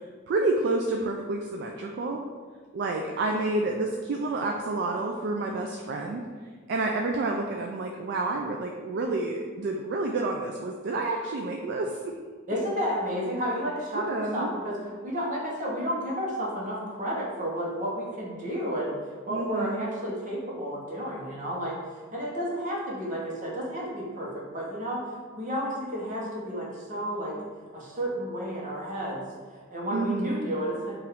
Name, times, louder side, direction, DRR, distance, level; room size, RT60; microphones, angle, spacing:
voice 1, 0.3-2.2 2.7-6.2 6.7-12.1 13.9-14.5 19.3-19.8 29.9-30.5, right 2 dB, 55° right, 1 dB, 0.3 m, -29 dB
voice 2, 12.5-27.4 27.7-31.0, equal, 40° right, -3 dB, 0.9 m, -32 dB
4.6 x 2.5 x 3.5 m, 1.5 s
head